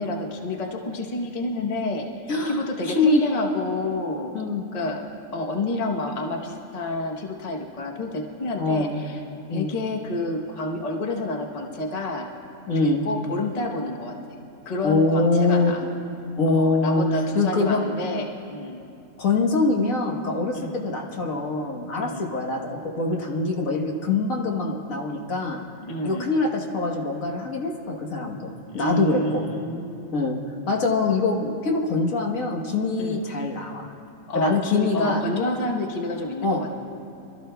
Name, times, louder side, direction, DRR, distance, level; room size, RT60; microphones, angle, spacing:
voice 1, 0.0-2.1 2.5-4.3 4.7-5.0 5.3-9.2 9.5-12.3 12.7-14.1 14.6-15.8 16.5-18.8 20.5-20.7 22.0-22.2 25.8-26.3 28.7-30.3 33.0-33.2 34.3-36.7, left 2 dB, 30° left, 1 dB, 0.9 m, -29 dB
voice 2, 2.3-3.2 4.3-4.6 8.6-9.0 9.5-9.7 12.7-13.0 14.8-15.9 16.4-17.0 17.3-17.8 19.2-25.6 26.0-29.4 30.1-30.4 30.7-33.9 34.3-35.2 36.4-36.6, left 3 dB, 70° left, 0 dB, 1.7 m, -24 dB
26.0 x 13.5 x 2.3 m, 2.6 s
omnidirectional pair, 1.5 m